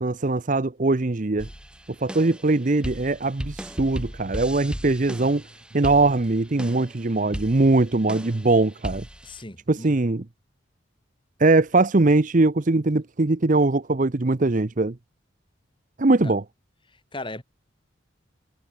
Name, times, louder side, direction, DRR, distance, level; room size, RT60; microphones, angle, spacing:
voice 1, 0.0-1.5 2.0-5.4 5.7-9.0 9.7-10.2 11.4-15.0 16.0-16.4, right 2 dB, 40° right, 0.7 m, -21 dB
sound 1, 1.4-9.4, equal, 5° right, 4.7 m, -37 dB
voice 2, 9.2-9.9 16.2-16.3 16.9-17.4, left 2 dB, 25° left, 6.6 m, -37 dB
head